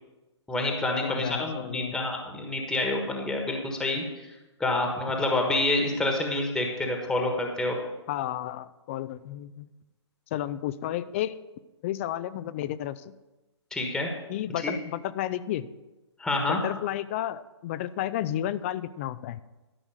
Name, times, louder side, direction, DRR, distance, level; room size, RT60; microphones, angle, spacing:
voice 1, 0.5-4.3 4.6-7.8 13.7-14.1 14.6-14.7 16.2-16.6, left 2 dB, 5° left, 2 dB, 1.4 m, -28 dB
voice 2, 1.0-1.9 8.1-9.7 10.3-11.3 11.8-13.1 14.3-15.7 16.5-19.4, left 12 dB, 25° left, 15 dB, 0.4 m, -32 dB
12.5 x 6.0 x 6.5 m, 1.1 s
figure-of-eight pair, 135°, 15 cm